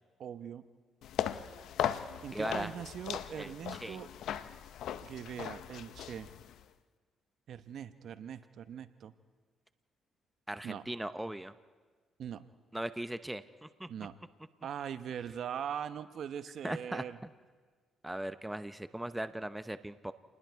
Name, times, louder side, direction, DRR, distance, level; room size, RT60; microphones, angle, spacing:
voice 1, 0.2-0.6 2.2-4.1 5.0-6.3 7.5-9.1 10.6-10.8 12.2-12.4 13.9-14.1 14.6-17.2, right 8 dB, 65° right, 12 dB, 0.8 m, -41 dB
sound 1, 1.0-6.6, left 10 dB, 80° left, 0.7 m, -38 dB
voice 2, 2.3-2.7 3.4-4.0 10.5-11.5 12.7-13.9 16.6-17.0 18.0-20.1, right 1 dB, 10° right, 12 dB, 0.7 m, -38 dB
28.5 x 20.0 x 4.7 m, 1.5 s
cardioid pair, 90°, 0 cm